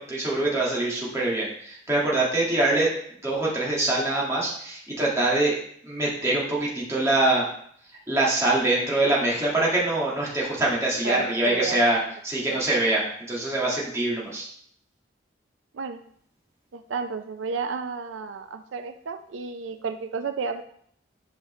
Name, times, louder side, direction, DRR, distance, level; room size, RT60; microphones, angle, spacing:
voice 1, 0.0-2.9 3.2-7.5 8.1-14.5, right 2 dB, 15° right, -6 dB, 1.8 m, -24 dB
voice 2, 11.0-11.8 12.5-12.6 15.7-16.0 16.7-20.6, right 5 dB, 90° right, 9 dB, 0.5 m, -32 dB
8.2 x 5.1 x 3.2 m, 0.64 s
head